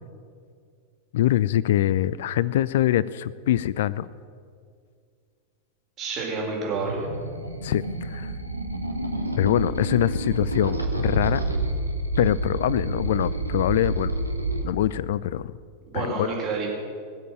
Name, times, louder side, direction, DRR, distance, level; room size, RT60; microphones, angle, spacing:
voice 1, 1.1-4.1 7.6-8.3 9.4-11.5 12.2-14.1 14.6-15.5 15.9-16.3, left 12 dB, 55° left, 19 dB, 0.3 m, -24 dB
voice 2, 6.0-7.1 15.9-16.7, right 4 dB, 30° right, -2 dB, 4.8 m, -29 dB
sound 1, 6.7-14.6, right 2 dB, 90° right, 1.3 m, -28 dB
20.0 x 7.7 x 7.7 m, 2.2 s
figure-of-eight pair, 90°, 0 cm